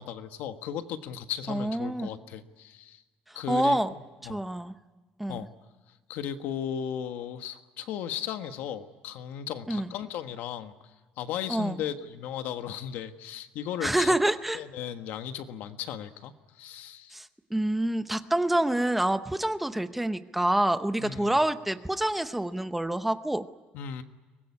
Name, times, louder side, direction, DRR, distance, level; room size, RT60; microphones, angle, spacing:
voice 1, 0.0-3.0 3.3-4.4 5.3-5.5 6.1-10.7 11.2-14.1 14.5-17.1 21.0-21.4 23.7-24.0, left 9 dB, 70° left, 8 dB, 1.5 m, -36 dB
voice 2, 1.5-2.1 3.3-3.9 4.2-4.7 5.2-5.4 9.7-9.9 11.5-11.8 13.8-14.6 17.1-23.5, right 1 dB, 5° right, 10 dB, 0.8 m, -27 dB
23.5 x 20.0 x 9.8 m, 1.3 s
cardioid pair, 175°, 3 cm